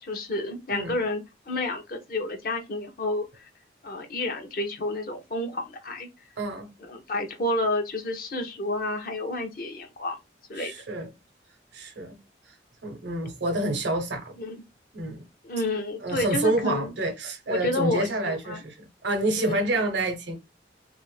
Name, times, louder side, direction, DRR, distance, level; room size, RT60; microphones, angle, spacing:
voice 1, 0.1-3.5 3.8-6.1 6.8-10.2 10.5-10.7 14.4-14.6 15.4-16.9 17.5-18.6 19.4-19.6, left 2 dB, 50° left, 0.6 m, -30 dB
voice 2, 6.4-6.7 10.6-11.1 11.7-12.2 12.8-14.4 14.9-15.2 16.0-20.4, right 2 dB, 80° right, 0.7 m, -28 dB
2.4 x 2.0 x 3.1 m
head